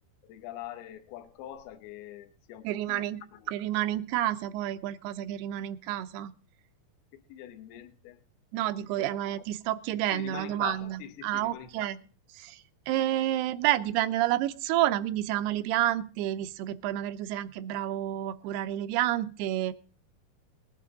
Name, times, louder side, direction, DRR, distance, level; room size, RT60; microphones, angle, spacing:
voice 1, 0.2-3.5 7.3-8.2 8.7-9.2 10.1-11.9, left 11 dB, 75° left, 7 dB, 2.8 m, -44 dB
voice 2, 2.6-3.2 3.5-6.3 8.5-12.0 12.3-19.7, right 13 dB, 85° right, 11 dB, 2.8 m, -29 dB
20.0 x 9.7 x 3.7 m, 0.38 s
omnidirectional pair, 4.6 m